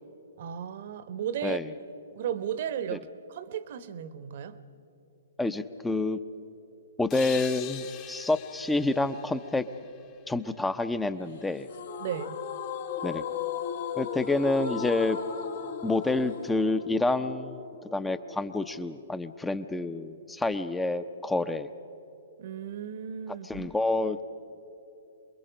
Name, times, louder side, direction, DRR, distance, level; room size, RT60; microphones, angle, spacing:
voice 1, 0.4-1.6 2.1-4.6 12.0-12.5 22.4-23.7, right 9 dB, 50° right, 14 dB, 0.9 m, -35 dB
voice 2, 5.4-6.2 7.0-9.6 10.3-11.7 13.0-13.2 14.0-15.2 15.8-17.7 17.9-21.7 23.4-24.2, left 2 dB, 5° left, 12 dB, 0.6 m, -28 dB
sound 1, 7.1-10.6, left 10 dB, 35° left, 1.2 m, -43 dB
sound 2, 11.7-18.7, left 7 dB, 60° left, 1.2 m, -36 dB
27.5 x 22.0 x 5.1 m, 2.8 s
figure-of-eight pair, 120°, 0 cm